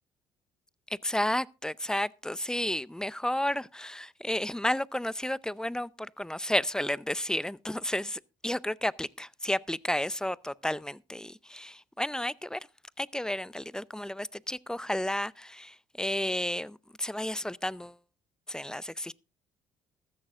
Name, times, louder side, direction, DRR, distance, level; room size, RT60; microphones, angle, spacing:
voice 1, 0.9-12.7 13.0-18.0 18.5-19.1, left 1 dB, 5° left, 0.5 m, -32 dB
15.5 x 13.5 x 2.5 m
hypercardioid pair, 60°, 12 cm